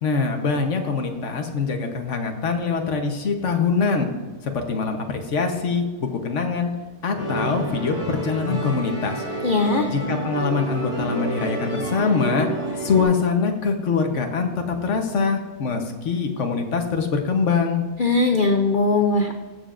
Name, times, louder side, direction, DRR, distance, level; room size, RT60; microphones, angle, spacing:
voice 1, 0.0-4.1 4.4-6.7 7.0-9.2 9.9-12.5 12.8-17.8, left 5 dB, 55° left, 5 dB, 1.2 m, -23 dB
Musical instrument, 7.2-13.0, right 1 dB, 10° right, 2.7 m, -29 dB
voice 2, 9.4-9.9 18.0-19.3, left 3 dB, 75° left, 5 dB, 0.4 m, -19 dB
16.5 x 6.9 x 2.5 m, 1.4 s
omnidirectional pair, 1.6 m